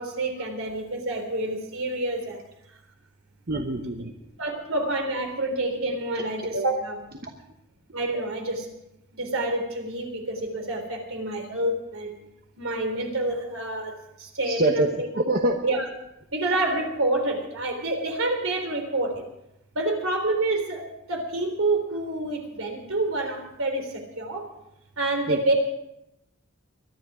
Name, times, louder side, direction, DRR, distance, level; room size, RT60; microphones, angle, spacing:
voice 1, 0.0-2.4 4.4-7.0 7.9-8.7 9.1-12.1 12.6-15.1 15.6-15.9 16.3-19.2 19.7-24.5 25.0-25.5, right 2 dB, 75° right, 4 dB, 3.6 m, -28 dB
voice 2, 3.5-4.1 4.4-4.6 7.2-7.3 8.1-8.3 14.5-14.9 15.1-15.6 25.3-25.4, right 2 dB, 45° right, 3 dB, 1.1 m, -25 dB
23.0 x 11.0 x 4.9 m, 0.85 s
head